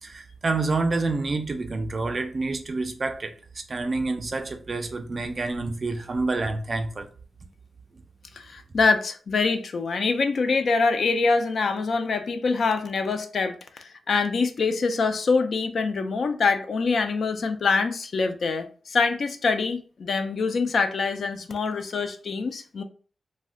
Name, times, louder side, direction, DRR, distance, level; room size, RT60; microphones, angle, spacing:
voice 1, 0.0-7.1, right 3 dB, 35° right, 0.3 m, -28 dB
voice 2, 8.4-22.8, left 4 dB, 55° left, 0.3 m, -25 dB
2.4 x 2.1 x 3.5 m
wide cardioid pair, 175°, 0 cm